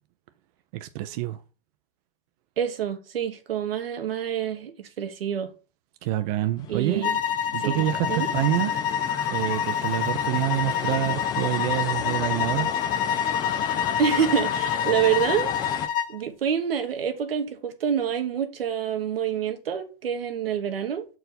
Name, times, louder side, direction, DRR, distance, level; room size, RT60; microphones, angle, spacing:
voice 1, 0.7-1.4 6.0-7.1 7.5-8.8 9.3-12.7, right 14 dB, 40° right, 0.5 m, -27 dB
voice 2, 2.6-5.5 6.7-7.2 7.6-8.3 14.0-15.5 16.1-21.1, right 8 dB, 80° right, 1.3 m, -27 dB
sound 1, 6.6-15.9, left 9 dB, 15° left, 0.3 m, -34 dB
sound 2, 7.0-16.2, left 8 dB, 60° left, 1.1 m, -27 dB
6.5 x 4.6 x 4.1 m
hypercardioid pair, 125°, 29 cm